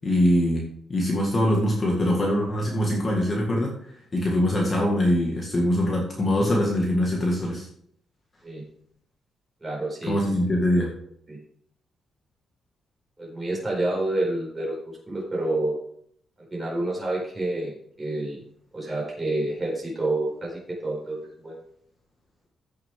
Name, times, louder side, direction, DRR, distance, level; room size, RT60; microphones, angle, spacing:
voice 1, 0.0-3.7 4.1-7.7 10.0-10.9, left 1 dB, 25° left, -1 dB, 1.9 m, -23 dB
voice 2, 9.6-10.2 10.7-10.8 11.3-11.4 13.2-14.8 15.1-15.8 16.5-18.4 18.7-21.5, right 2 dB, 15° right, -3 dB, 4.6 m, -28 dB
14.5 x 6.5 x 3.7 m, 0.66 s
cardioid pair, 160°, 0 cm